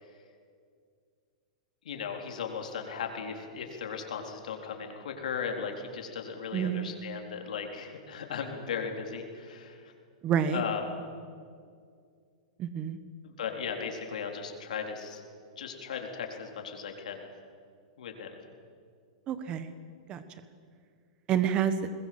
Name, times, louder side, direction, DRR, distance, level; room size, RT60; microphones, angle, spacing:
voice 1, 1.8-9.9 10.5-10.8 13.2-15.2 15.6-17.3 18.0-18.4, left 6 dB, 85° left, 3 dB, 3.8 m, -37 dB
voice 2, 6.5-7.0 10.2-10.6 12.6-13.0 19.3-19.7 20.1-20.2 21.3-21.9, right 8 dB, 25° right, 11 dB, 1.3 m, -28 dB
21.0 x 21.0 x 7.7 m, 2.2 s
supercardioid pair, 160°, 4 cm